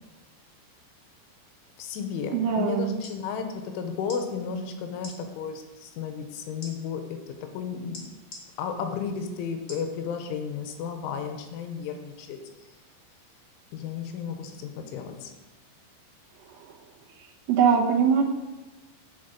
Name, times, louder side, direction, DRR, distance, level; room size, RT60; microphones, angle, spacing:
voice 1, 1.8-8.0 8.6-12.4 13.7-15.3, left 6 dB, 85° left, 6 dB, 3.2 m, -33 dB
voice 2, 2.3-2.9 17.5-18.2, right 7 dB, 80° right, 0 dB, 3.6 m, -21 dB
sound 1, 3.0-3.2 4.0-4.2 5.0-5.2 6.6-6.7 7.9-8.4 9.7-9.9 10.5-10.6, left 2 dB, 40° left, 2.0 m, -42 dB
7.8 x 7.4 x 5.2 m, 1.1 s
omnidirectional pair, 5.7 m